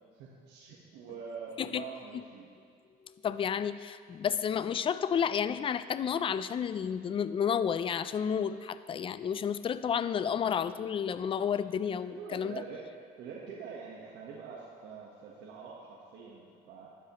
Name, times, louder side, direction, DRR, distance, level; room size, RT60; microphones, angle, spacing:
voice 1, 0.1-2.5 12.0-12.8 13.2-17.0, right 5 dB, 85° right, -3 dB, 1.3 m, -45 dB
voice 2, 3.2-12.5, left 8 dB, 30° left, 14 dB, 0.4 m, -31 dB
12.5 x 11.0 x 3.0 m, 2.1 s
cardioid pair, 110°, 17 cm